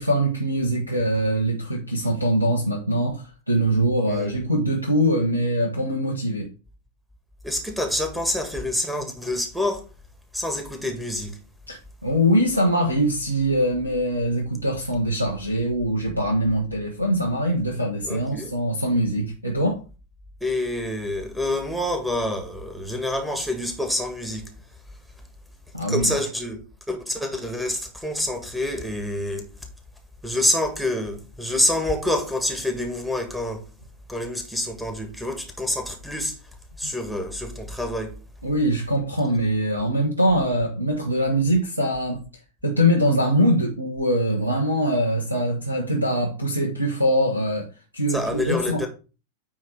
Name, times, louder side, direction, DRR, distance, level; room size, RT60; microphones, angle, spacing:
voice 1, 0.0-6.5 11.7-19.8 25.7-26.1 36.8-36.9 38.4-42.2 42.6-47.7 47.9-48.8, equal, 85° right, 1.1 m, -23 dB
voice 2, 4.1-4.4 7.4-9.9 10.3-11.4 18.0-18.5 20.4-24.5 25.9-26.6 26.9-29.5 30.2-33.7 34.1-36.4 36.8-38.2 48.1-48.9, left 1 dB, ahead, 1.6 m, -27 dB
9.3 x 3.3 x 4.6 m
figure-of-eight pair, 90°, 0 cm